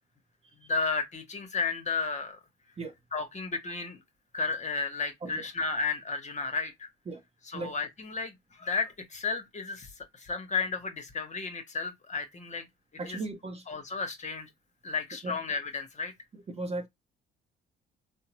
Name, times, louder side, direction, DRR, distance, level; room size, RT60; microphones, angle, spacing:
voice 1, 0.6-2.4 3.1-4.0 4.3-6.9 7.5-12.6 13.1-13.2 13.7-14.5 14.8-16.1, left 4 dB, 35° left, 1.0 m, -33 dB
voice 2, 13.0-13.7 15.2-15.4 16.3-16.9, right 2 dB, 30° right, 0.7 m, -37 dB
3.6 x 2.0 x 2.9 m
supercardioid pair, 75°, 21 cm